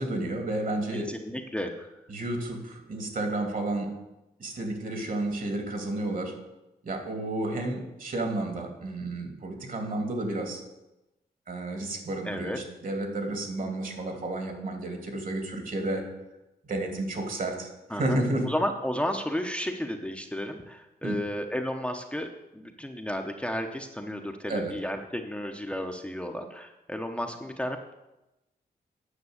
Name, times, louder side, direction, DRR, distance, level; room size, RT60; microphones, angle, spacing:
voice 1, 0.0-1.1 2.1-3.9 4.4-6.3 6.8-10.6 11.5-16.0 16.6-18.4 21.0-21.2 24.5-24.7, right 2 dB, 55° right, 3 dB, 2.4 m, -31 dB
voice 2, 0.9-1.9 12.2-12.6 17.9-27.9, equal, 5° left, 3 dB, 0.8 m, -33 dB
9.8 x 6.0 x 8.0 m, 0.98 s
wide cardioid pair, 100°, 17 cm